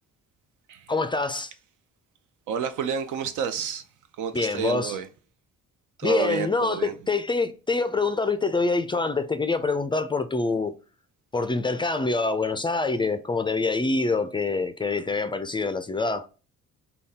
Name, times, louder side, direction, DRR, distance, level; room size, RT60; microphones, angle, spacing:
voice 1, 0.9-1.5 4.3-5.0 6.0-10.7 11.3-16.3, left 3 dB, 15° left, 0.3 m, -25 dB
voice 2, 2.5-3.8 4.2-5.1 6.0-6.9, right 7 dB, 85° right, 0.6 m, -29 dB
4.0 x 2.3 x 3.5 m
cardioid pair, 90°, 30 cm